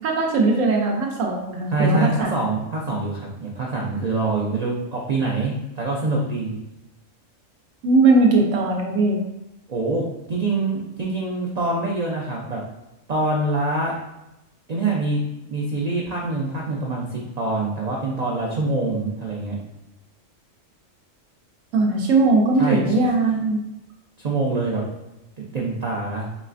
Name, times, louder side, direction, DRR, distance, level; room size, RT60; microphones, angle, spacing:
voice 1, 0.0-2.3 7.8-9.2 21.7-23.6, right 3 dB, 80° right, 0 dB, 1.0 m, -19 dB
voice 2, 1.7-6.6 9.7-10.0 10.3-12.6 13.1-13.9 14.7-15.2 15.5-19.5 22.6-22.9 24.2-24.8 25.4-26.3, right 2 dB, 60° right, -3 dB, 0.4 m, -25 dB
4.1 x 3.1 x 2.4 m, 0.93 s
omnidirectional pair, 1.3 m